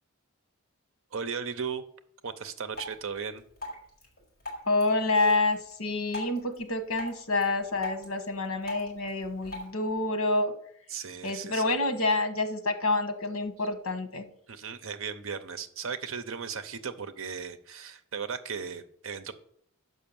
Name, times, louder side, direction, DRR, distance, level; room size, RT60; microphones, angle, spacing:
voice 1, 1.1-1.8 2.2-3.4 10.9-11.7 14.5-19.3, right 6 dB, 70° right, 10 dB, 0.7 m, -36 dB
Drip, 2.7-9.7, left 1 dB, 45° left, 4.3 m, -43 dB
voice 2, 4.7-10.5 11.2-14.3, left 2 dB, 80° left, 9 dB, 1.1 m, -28 dB
6.3 x 5.6 x 7.0 m, 0.67 s
head